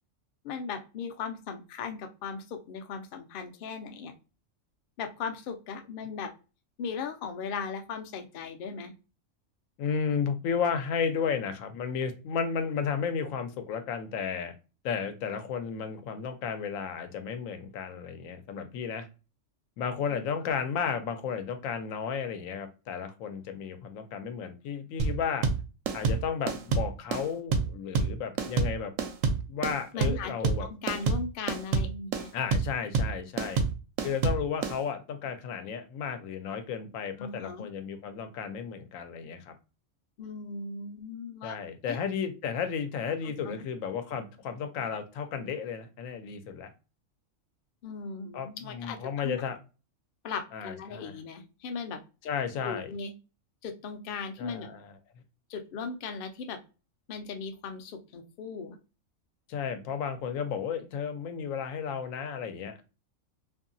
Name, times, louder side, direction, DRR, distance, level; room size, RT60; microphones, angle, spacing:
voice 1, 0.4-4.1 5.0-6.3 6.8-8.9 29.9-30.3 30.7-32.3 37.2-37.7 40.2-41.5 41.9-42.0 43.2-43.5 47.8-49.4 50.2-52.0 52.6-53.1 53.6-54.7 55.5-56.6 57.1-58.8, left 5 dB, 60° left, 6 dB, 0.6 m, -38 dB
voice 2, 9.8-14.5 14.8-19.1 19.8-25.5 25.9-28.9 29.4-30.7 32.3-33.6 34.0-39.5 41.4-46.7 48.3-49.6 50.5-51.2 52.2-52.9 54.4-54.9 59.5-62.8, left 6 dB, 90° left, 8 dB, 1.0 m, -33 dB
sound 1, 25.0-34.8, right 4 dB, 80° right, 1.0 m, -27 dB
2.7 x 2.6 x 2.6 m, 0.32 s
omnidirectional pair, 1.4 m